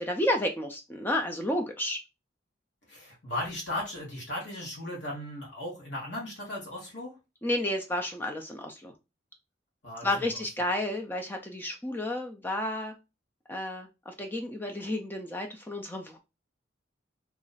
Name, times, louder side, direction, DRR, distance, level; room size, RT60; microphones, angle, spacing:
voice 1, 0.0-2.0 7.4-8.9 10.0-12.9 13.5-16.2, left 1 dB, 10° left, 3 dB, 0.4 m, -31 dB
voice 2, 2.9-7.1 9.8-10.1, left 1 dB, 70° left, -3 dB, 1.4 m, -36 dB
3.0 x 2.5 x 4.0 m, 0.26 s
head